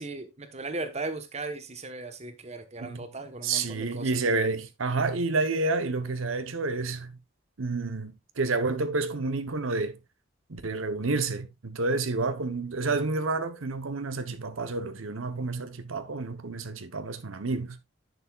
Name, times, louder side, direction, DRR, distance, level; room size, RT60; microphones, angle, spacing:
voice 1, 0.0-4.2, right 2 dB, 35° right, 1.1 m, -37 dB
voice 2, 3.4-7.2 7.6-10.0 10.5-17.8, right 3 dB, 90° right, 0.9 m, -29 dB
10.5 x 6.9 x 2.4 m
head